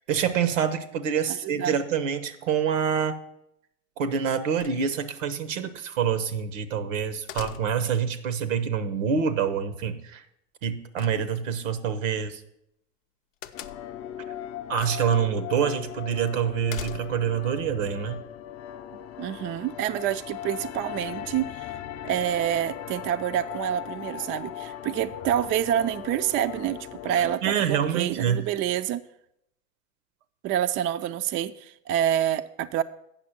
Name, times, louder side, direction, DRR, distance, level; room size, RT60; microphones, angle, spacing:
voice 1, 0.1-3.2 4.0-10.2 10.6-12.4 14.7-18.2 27.1-28.4, right 7 dB, 80° right, 12 dB, 0.9 m, -26 dB
voice 2, 1.3-1.8 18.9-21.8 22.0-29.0 30.4-32.8, right 11 dB, 35° right, 11 dB, 0.4 m, -27 dB
sound 1, 4.6-5.2 7.3-8.0 11.0-11.7 13.4-14.0 14.7-15.2 15.5-15.6 16.7-17.4, left 10 dB, 90° left, 0.6 m, -41 dB
sound 2, 13.5-27.4, left 10 dB, 40° left, 0.6 m, -38 dB
8.6 x 6.1 x 5.8 m, 0.80 s
hypercardioid pair, 85°, 38 cm